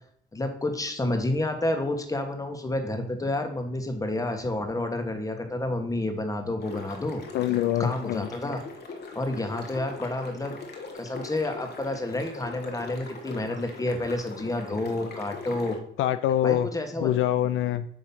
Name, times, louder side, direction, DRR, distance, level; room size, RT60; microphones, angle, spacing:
voice 1, 0.3-7.2 7.8-8.6 9.1-10.6 10.9-15.8 16.4-17.1, left 2 dB, 15° left, 5 dB, 1.3 m, -29 dB
sound 1, 6.6-15.8, left 3 dB, 55° left, 1.3 m, -41 dB
voice 2, 7.3-8.3 16.0-16.7 17.0-17.9, left 12 dB, 80° left, 11 dB, 0.4 m, -24 dB
8.3 x 3.1 x 5.6 m, 0.64 s
cardioid pair, 90°, 20 cm